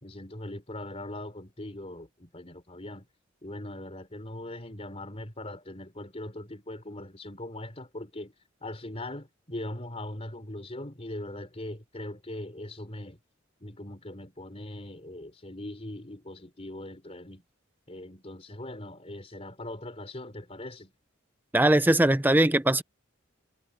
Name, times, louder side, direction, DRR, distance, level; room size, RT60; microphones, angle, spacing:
voice 1, 0.0-3.1 3.4-8.3 8.6-13.2 13.6-17.4 17.9-20.9, left 1 dB, 30° left, 3.7 m, -40 dB
voice 2, 21.5-22.8, right 1 dB, 10° right, 0.6 m, -21 dB
head